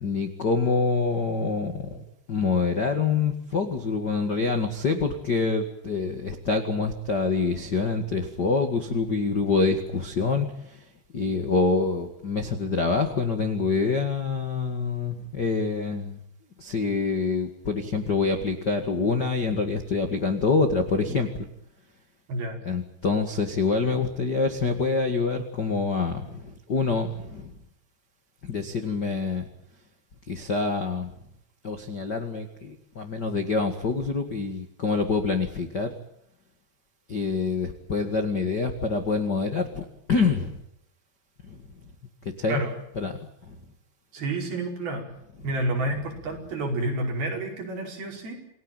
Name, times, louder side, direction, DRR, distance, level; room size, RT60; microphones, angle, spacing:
voice 1, 0.0-10.8 11.1-16.2 16.6-21.5 22.6-27.5 28.4-29.5 30.3-31.1 31.6-35.9 37.1-40.6 41.4-41.6 42.2-42.6 42.9-43.2 43.4-43.5, left 4 dB, 65° left, 7 dB, 1.0 m, -26 dB
voice 2, 44.1-45.1 45.4-48.4, right 2 dB, 55° right, 1 dB, 7.1 m, -29 dB
28.5 x 18.5 x 9.1 m, 0.78 s
omnidirectional pair, 5.3 m